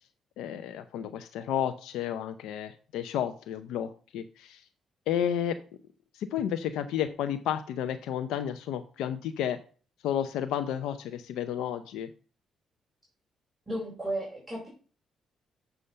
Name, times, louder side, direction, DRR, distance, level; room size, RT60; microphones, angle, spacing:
voice 1, 0.4-4.7 5.1-5.6 6.1-9.6 10.0-12.1, left 9 dB, 90° left, 8 dB, 0.6 m, -32 dB
voice 2, 13.7-14.7, right 1 dB, 15° right, -2 dB, 3.6 m, -34 dB
6.9 x 6.3 x 5.6 m, 0.39 s
cardioid pair, 90°, 0 cm